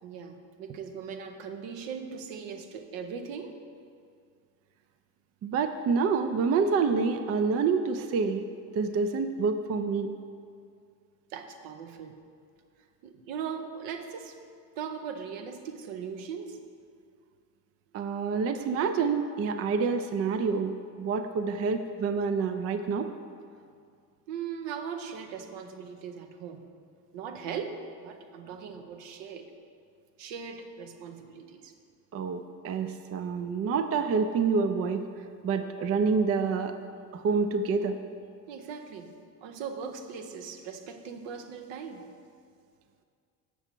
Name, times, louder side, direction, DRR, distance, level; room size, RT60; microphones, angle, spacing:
voice 1, 0.0-3.6 11.3-12.2 13.0-14.4 14.8-16.6 24.3-26.6 27.1-29.5 30.2-31.7 38.5-39.1 39.4-42.1, right 6 dB, 65° right, 6 dB, 0.8 m, -39 dB
voice 2, 5.4-8.5 8.7-10.1 17.9-23.1 32.1-35.0 35.4-36.8 37.1-38.0, right 5 dB, 35° right, 9 dB, 0.4 m, -27 dB
7.0 x 5.7 x 4.5 m, 2.3 s
hypercardioid pair, 60°, 48 cm